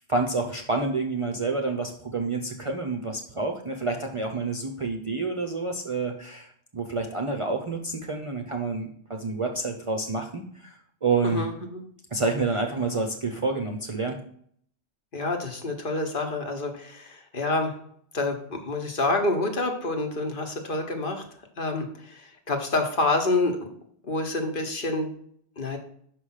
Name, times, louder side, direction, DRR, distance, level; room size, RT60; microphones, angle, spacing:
voice 1, 0.0-11.5 12.1-14.2, right 3 dB, 35° right, 2 dB, 0.6 m, -28 dB
voice 2, 11.2-11.8 15.1-17.7 18.1-21.2 21.6-23.7 24.0-25.1 25.6-25.8, left 2 dB, 50° left, 4 dB, 1.2 m, -27 dB
5.9 x 4.9 x 5.6 m, 0.63 s
omnidirectional pair, 1.2 m